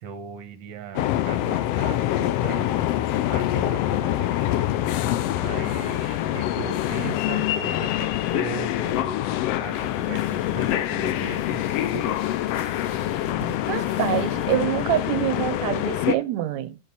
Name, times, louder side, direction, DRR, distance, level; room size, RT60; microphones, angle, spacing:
voice 1, 0.0-2.7 3.3-4.6 5.4-9.2 9.6-11.6, right 8 dB, 60° right, 1.3 m, -38 dB
sound 1, 1.0-16.2, left 13 dB, 80° left, 1.4 m, -25 dB
sound 2, 8.3-14.6, left 1 dB, 35° left, 2.8 m, -41 dB
voice 2, 13.7-16.8, right 13 dB, 75° right, 1.8 m, -26 dB
6.9 x 5.8 x 6.0 m
omnidirectional pair, 3.5 m